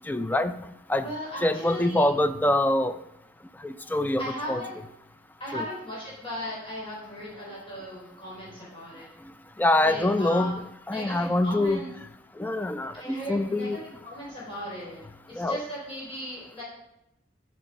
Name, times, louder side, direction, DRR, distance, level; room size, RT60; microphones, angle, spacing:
voice 1, 0.1-0.6 0.9-1.1 1.4-2.9 3.6-4.2 4.5-4.6 5.5-5.6 9.6-11.8 12.4-13.8 15.4-15.6, left 1 dB, 10° left, 11 dB, 0.4 m, -25 dB
voice 2, 1.0-2.2 4.2-4.8 5.4-9.1 9.8-10.5 10.9-11.9 12.9-15.0 15.3-16.6, equal, 30° left, -6 dB, 4.1 m, -37 dB
8.9 x 6.2 x 5.1 m, 0.85 s
head